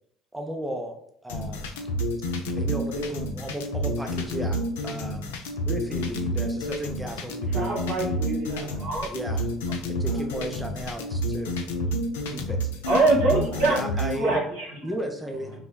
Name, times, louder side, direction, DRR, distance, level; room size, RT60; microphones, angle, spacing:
voice 1, 0.3-1.0 1.2-1.7 2.6-4.6 4.8-5.3 5.7-7.7 9.0-9.5 9.9-11.5 12.3-12.6 13.6-14.4 14.8-15.5, equal, 10° right, 2 dB, 0.5 m, -34 dB
sound 1, 1.3-14.2, equal, 85° left, 0.3 m, -29 dB
voice 2, 7.5-8.8 10.0-10.5, right 2 dB, 65° right, -4 dB, 0.7 m, -33 dB
voice 3, 12.8-14.9, right 2 dB, 85° right, -5 dB, 1.3 m, -23 dB
3.4 x 2.0 x 2.2 m, 0.70 s
hypercardioid pair, 65°, 0 cm